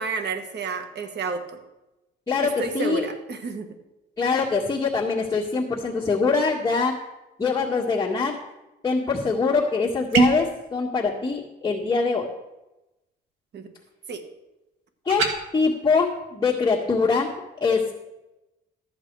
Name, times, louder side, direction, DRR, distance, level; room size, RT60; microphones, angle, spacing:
voice 1, 0.0-1.5 2.4-3.7 13.5-13.7 14.1-14.2, right 4 dB, 60° right, 7 dB, 1.5 m, -30 dB
voice 2, 2.3-3.1 4.2-6.9 7.4-8.3 8.8-12.3 15.0-15.2 15.5-17.3 17.6-17.9, left 4 dB, 15° left, -7 dB, 1.8 m, -23 dB
sound 1, 10.1-10.5 15.1-15.4, right 3 dB, 90° right, 1.7 m, -20 dB
13.5 x 8.1 x 4.7 m, 0.99 s
cardioid pair, 90°, 20 cm